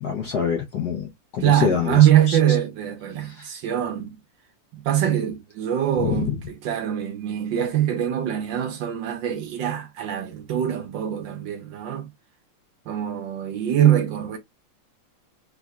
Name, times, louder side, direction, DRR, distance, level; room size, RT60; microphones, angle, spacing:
voice 1, 0.0-1.1 1.3-2.4 3.2-3.5 6.0-6.3, left 7 dB, 70° left, 1.0 m, -26 dB
voice 2, 1.4-4.2 4.8-12.1 12.9-14.4, right 11 dB, 75° right, 1.2 m, -23 dB
3.6 x 3.2 x 2.3 m
omnidirectional pair, 2.4 m